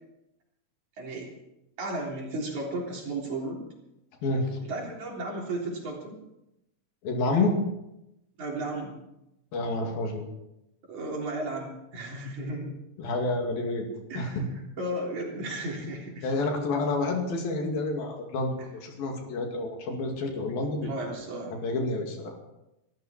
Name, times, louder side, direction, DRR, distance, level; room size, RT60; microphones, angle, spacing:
voice 1, 1.0-1.3 1.8-3.6 4.6-6.2 8.4-9.0 10.9-12.8 14.1-14.4 14.8-16.3 20.8-21.6, right 2 dB, 55° right, -1 dB, 4.9 m, -34 dB
voice 2, 4.2-4.6 7.0-7.5 9.5-10.2 13.0-13.9 14.2-14.4 16.2-21.1 21.5-22.3, left 2 dB, 85° left, 2 dB, 4.3 m, -29 dB
23.0 x 14.0 x 4.4 m, 0.88 s
omnidirectional pair, 4.1 m